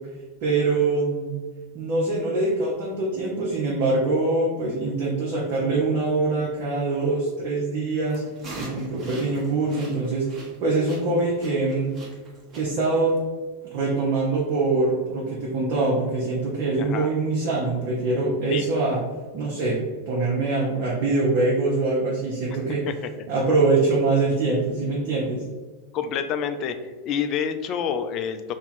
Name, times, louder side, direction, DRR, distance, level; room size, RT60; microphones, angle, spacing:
voice 1, 0.4-1.3 1.7-8.2 8.5-10.3 10.6-12.0 12.5-13.2 13.7-19.0 19.3-19.8 20.1-22.9 23.3-25.4, right 3 dB, 45° right, -5 dB, 0.8 m, -24 dB
sound 1, 8.1-13.2, right 1 dB, 20° right, 1.2 m, -40 dB
voice 2, 16.8-17.1 18.5-18.6 22.9-23.0 25.9-26.8 27.0-28.5, left 7 dB, 40° left, 8 dB, 0.3 m, -27 dB
2.9 x 2.7 x 4.1 m, 1.3 s
figure-of-eight pair, 90°, 0 cm